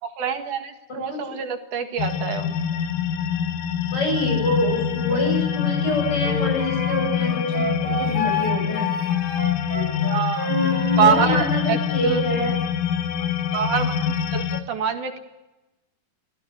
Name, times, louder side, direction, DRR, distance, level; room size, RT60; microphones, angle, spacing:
voice 1, 0.0-2.6 10.1-10.5 11.0-12.2 13.2-15.2, right 7 dB, 65° right, 6 dB, 3.1 m, -25 dB
voice 2, 0.9-1.2 3.9-8.9 9.7-9.8 10.5-12.5, left 2 dB, 30° left, 2 dB, 8.6 m, -26 dB
sound 1, 2.0-14.6, left 9 dB, 70° left, 2.5 m, -25 dB
Wind instrument woodwind instrument, 6.2-11.3, left 1 dB, 15° right, 2.7 m, -29 dB
26.0 x 16.5 x 8.2 m, 1.0 s
omnidirectional pair, 3.9 m